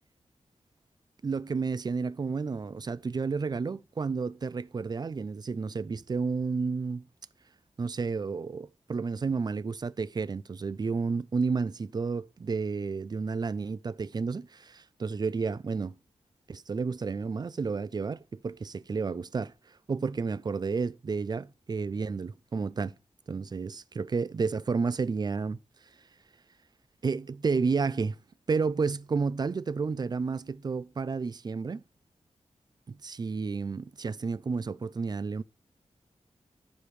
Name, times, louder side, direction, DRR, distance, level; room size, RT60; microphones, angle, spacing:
voice 1, 1.2-7.0 7.8-15.9 16.5-19.5 19.9-22.9 23.3-25.6 27.0-28.2 28.5-31.8 32.9-35.4, right 4 dB, 35° right, 0.4 m, -31 dB
14.5 x 5.1 x 3.2 m
wide cardioid pair, 130°, 12 cm